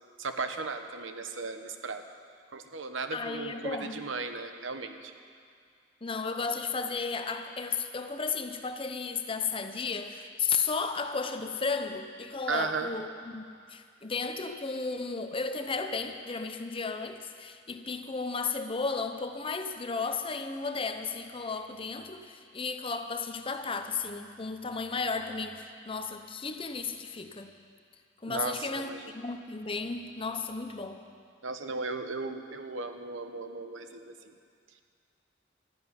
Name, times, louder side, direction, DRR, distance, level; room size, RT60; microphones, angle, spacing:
voice 1, 0.2-2.0 2.5-5.1 12.5-12.9 28.3-29.0 31.4-34.3, right 4 dB, 85° right, 7 dB, 1.1 m, -36 dB
voice 2, 3.1-4.0 6.0-27.5 28.2-31.0, left 4 dB, 30° left, 7 dB, 0.8 m, -34 dB
13.0 x 11.0 x 9.8 m, 2.2 s
head